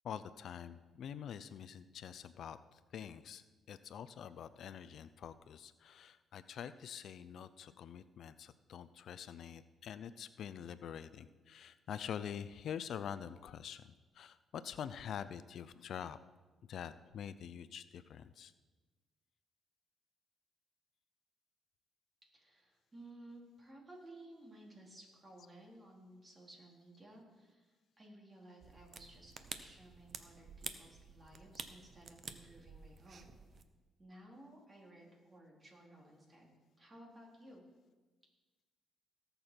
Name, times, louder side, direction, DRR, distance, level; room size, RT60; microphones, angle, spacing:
voice 1, 0.0-16.2 16.7-18.5, left 8 dB, 65° left, 13 dB, 0.4 m, -46 dB
voice 2, 22.3-33.4 34.0-36.5 36.8-37.6, right 1 dB, 30° right, -1 dB, 3.4 m, -57 dB
sound 1, 28.6-33.6, right 5 dB, 45° right, 0.9 m, -50 dB
18.0 x 6.9 x 4.4 m, 1.3 s
cardioid pair, 90°, 0 cm